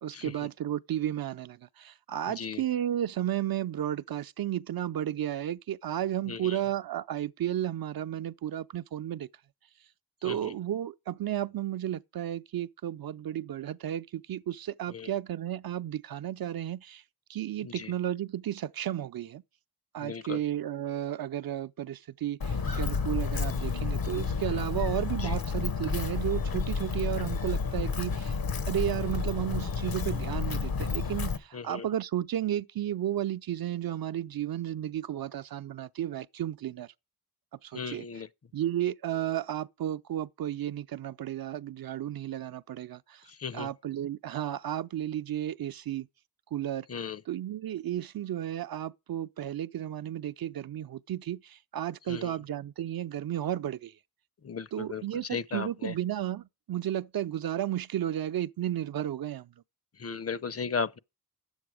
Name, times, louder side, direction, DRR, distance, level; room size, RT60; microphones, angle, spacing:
voice 1, 0.0-9.3 10.2-17.0 17.3-19.4 19.9-28.4 28.7-36.9 37.6-38.0 38.5-43.2 43.5-46.1 46.5-46.9 47.3-53.9 54.7-59.5, right 11 dB, 70° right, 0.5 m, -33 dB
voice 2, 6.3-6.6 10.3-10.5 14.9-15.1 17.6-17.9 20.0-20.4 25.2-25.4 31.5-31.8 37.7-38.3 43.3-43.7 46.9-47.2 52.1-52.4 54.4-55.9 60.0-61.0, left 5 dB, 40° left, 0.6 m, -36 dB
Walk footsteps, 22.4-31.4, left 5 dB, 70° left, 1.2 m, -31 dB
10.0 x 7.9 x 4.8 m
cardioid pair, 70°, 37 cm